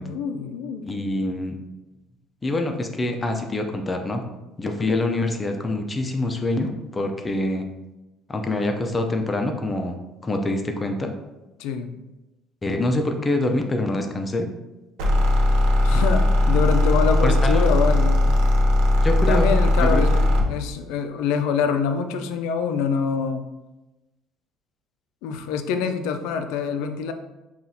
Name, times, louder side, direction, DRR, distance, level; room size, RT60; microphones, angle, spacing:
voice 1, 0.0-0.8 11.6-12.0 15.8-18.2 19.3-23.5 25.2-27.1, left 6 dB, 85° left, 7 dB, 0.3 m, -25 dB
voice 2, 0.8-1.6 2.4-4.2 4.6-7.7 8.3-10.0 10.2-11.1 12.6-14.5 17.2-17.7 19.0-20.0, left 2 dB, 20° left, 4 dB, 0.4 m, -25 dB
sound 1, 15.0-20.5, left 1 dB, 85° right, 0.5 m, -18 dB
5.7 x 2.4 x 2.7 m, 1.0 s
cardioid pair, 130°, 0 cm